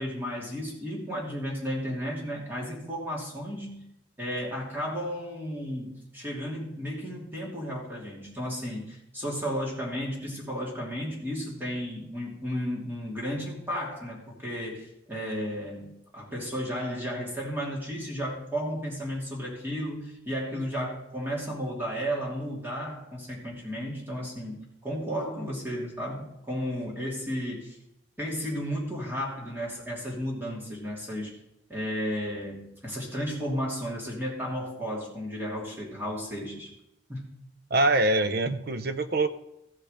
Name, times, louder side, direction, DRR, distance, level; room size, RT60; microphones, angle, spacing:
voice 1, 0.0-3.8 4.2-27.8 28.2-31.3 31.7-36.7 37.1-37.3, equal, 10° right, 2.8 m, -33 dB
voice 2, 37.7-39.3, right 2 dB, 55° right, 0.6 m, -24 dB
15.0 x 5.6 x 5.1 m
head